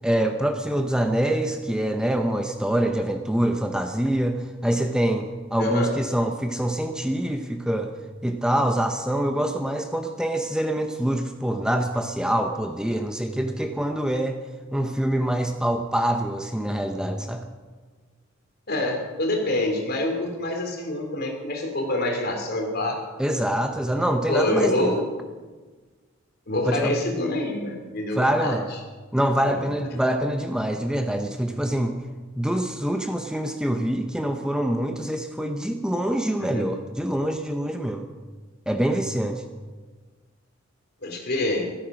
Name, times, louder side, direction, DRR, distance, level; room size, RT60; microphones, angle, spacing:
voice 1, 0.0-7.9 8.2-14.4 14.7-17.4 23.2-25.0 26.7-27.0 28.1-28.7 29.1-32.0 32.4-38.1 38.7-39.4, right 1 dB, 5° right, 5 dB, 0.8 m, -25 dB
voice 2, 5.6-5.9 18.7-23.0 24.3-25.0 26.5-28.6 29.5-29.6 29.9-30.0 36.4-36.6 41.0-41.7, left 1 dB, 55° left, 2 dB, 3.3 m, -26 dB
15.5 x 13.5 x 6.2 m, 1.4 s
head